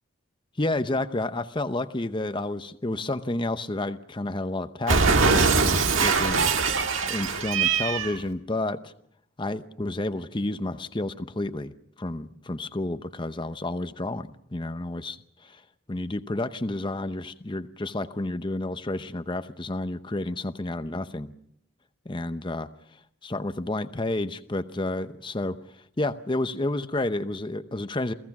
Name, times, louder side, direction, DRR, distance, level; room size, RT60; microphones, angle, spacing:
voice 1, 0.6-6.7 7.0-8.9 9.4-15.6 15.9-21.3 22.0-22.7 23.2-28.1, left 2 dB, 25° left, 10 dB, 0.7 m, -30 dB
Cat, 4.9-8.2, right 4 dB, 75° right, 1.6 m, -22 dB
28.5 x 16.5 x 6.0 m, 0.74 s
head